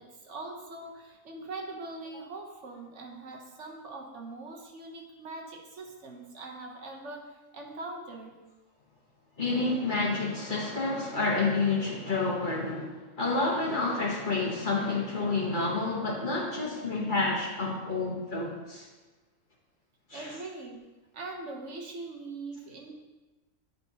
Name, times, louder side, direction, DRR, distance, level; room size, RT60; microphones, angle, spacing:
voice 1, 0.0-8.4 20.1-20.8 21.1-22.9, right 2 dB, 65° right, 0 dB, 1.2 m, -42 dB
voice 2, 9.4-18.9 20.1-20.4, left 3 dB, 40° left, -3 dB, 1.2 m, -29 dB
10.0 x 5.0 x 2.8 m, 1.2 s
omnidirectional pair, 1.4 m